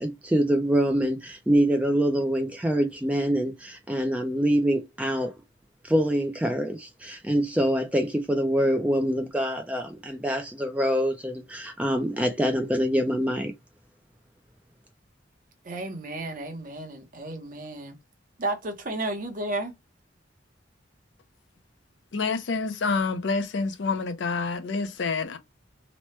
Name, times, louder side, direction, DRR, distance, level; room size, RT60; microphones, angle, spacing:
voice 1, 0.0-5.3 5.8-13.5, equal, 5° right, 0.3 m, -25 dB
voice 2, 15.6-18.0 18.4-19.7, right 2 dB, 45° right, 0.7 m, -33 dB
voice 3, 22.1-25.4, left 4 dB, 70° left, 0.5 m, -27 dB
3.0 x 2.1 x 3.0 m
head